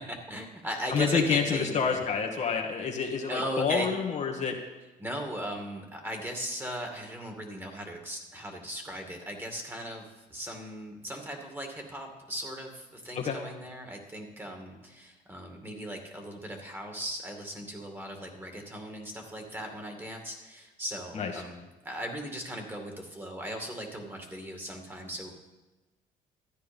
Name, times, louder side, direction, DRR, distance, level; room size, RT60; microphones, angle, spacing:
voice 1, 0.1-2.0 3.3-3.9 5.0-25.4, equal, 15° right, 3 dB, 2.3 m, -38 dB
voice 2, 0.9-4.5 13.1-13.4 21.1-21.3, left 6 dB, 45° left, 2 dB, 1.6 m, -28 dB
13.5 x 9.3 x 5.4 m, 1.1 s
cardioid pair, 110°, 17 cm